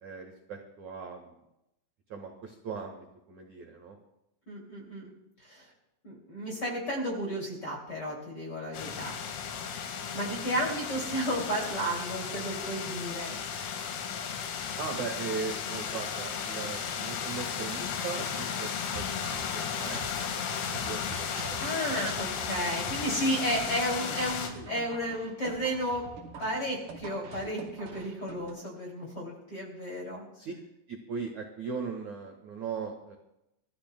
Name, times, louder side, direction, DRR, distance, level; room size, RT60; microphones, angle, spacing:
voice 1, 0.0-1.4 2.1-4.0 14.8-19.2 19.5-21.3 21.7-22.0 22.7-22.9 23.8-23.9 30.3-30.5 30.9-33.1, right 5 dB, 85° right, 1 dB, 1.6 m, -39 dB
voice 2, 4.5-5.1 5.4-5.6 6.0-9.2 10.1-13.3 21.6-26.1 26.4-30.2, equal, 30° left, -2 dB, 2.1 m, -33 dB
sound 1, 8.7-24.5, left 7 dB, 90° left, 4.4 m, -35 dB
sound 2, 18.9-28.5, right 4 dB, 55° right, 3.9 m, -45 dB
26.5 x 14.5 x 2.2 m, 0.85 s
omnidirectional pair, 5.9 m